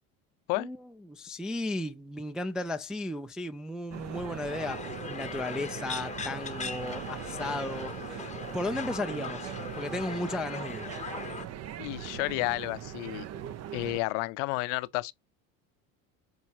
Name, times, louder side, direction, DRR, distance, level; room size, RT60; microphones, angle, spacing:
voice 1, 0.5-8.3 8.5-10.9, left 2 dB, ahead, 0.3 m, -35 dB
sound 1, 3.9-14.0, right 10 dB, 35° right, 0.7 m, -40 dB
sound 2, 4.5-11.5, left 6 dB, 15° left, 0.9 m, -40 dB
voice 2, 11.8-13.3 13.7-15.1, left 22 dB, 55° left, 0.6 m, -31 dB
7.9 x 4.8 x 2.8 m
figure-of-eight pair, 65°, 43 cm